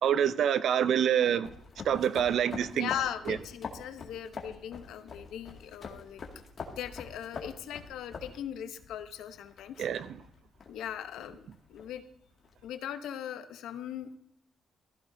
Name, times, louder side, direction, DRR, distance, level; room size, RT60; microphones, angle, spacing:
voice 1, 0.0-1.5 1.8-2.9 3.3-3.4 9.8-10.2, right 9 dB, 70° right, 0.6 m, -26 dB
sound 1, 1.4-12.6, left 5 dB, 50° left, 2.2 m, -46 dB
voice 2, 2.7-6.2 6.7-9.9 10.7-12.0 12.6-14.2, left 10 dB, 85° left, 0.9 m, -39 dB
15.0 x 14.5 x 2.7 m
cardioid pair, 90°, 0 cm